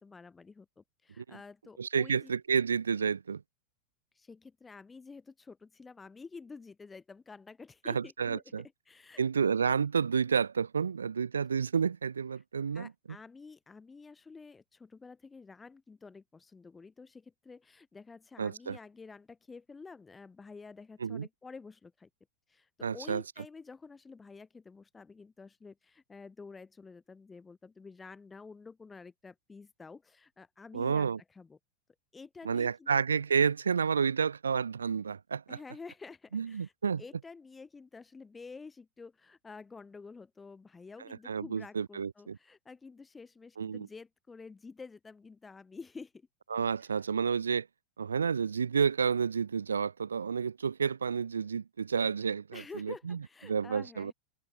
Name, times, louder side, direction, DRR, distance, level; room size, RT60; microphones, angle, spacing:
voice 1, 0.0-2.4 4.2-9.2 12.7-22.1 22.5-31.6 32.1-32.9 35.5-36.7 37.0-46.3 52.5-54.1, left 4 dB, 15° left, 7.1 m, -50 dB
voice 2, 1.8-3.4 7.9-8.6 9.2-12.9 18.4-18.8 21.0-21.3 22.8-23.2 30.7-31.2 32.4-35.6 36.3-37.0 41.0-42.4 43.6-43.9 46.5-47.7 48.0-53.2 53.4-54.1, right 6 dB, 70° right, 0.6 m, -30 dB
figure-of-eight pair, 90°, 0 cm